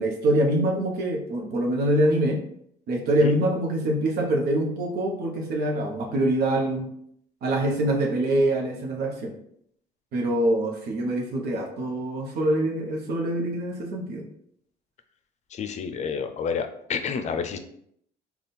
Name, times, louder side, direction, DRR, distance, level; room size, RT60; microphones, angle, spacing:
voice 1, 0.0-2.4 2.9-6.9 7.4-9.3 10.1-14.2, right 1 dB, 75° right, 1 dB, 0.9 m, -24 dB
voice 2, 15.5-17.6, left 6 dB, 45° left, 8 dB, 0.5 m, -29 dB
3.5 x 2.3 x 4.2 m, 0.70 s
cardioid pair, 110°, 17 cm